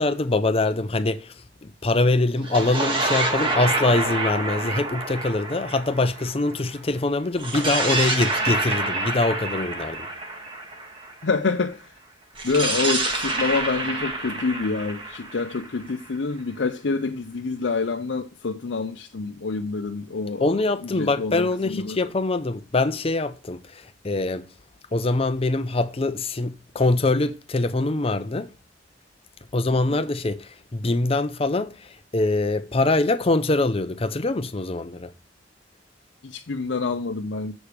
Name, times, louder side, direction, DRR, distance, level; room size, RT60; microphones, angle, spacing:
voice 1, 0.0-1.3 1.6-10.1 20.4-24.5 24.9-28.5 29.5-35.1, left 2 dB, 30° left, 0.6 m, -24 dB
sound 1, 2.4-6.8 7.4-11.3 12.4-16.2, right 2 dB, 30° right, 1.6 m, -27 dB
voice 2, 11.2-11.8 12.4-20.5 21.0-22.0 29.9-30.0 36.2-37.5, left 4 dB, 80° left, 0.6 m, -27 dB
7.2 x 5.0 x 6.5 m
head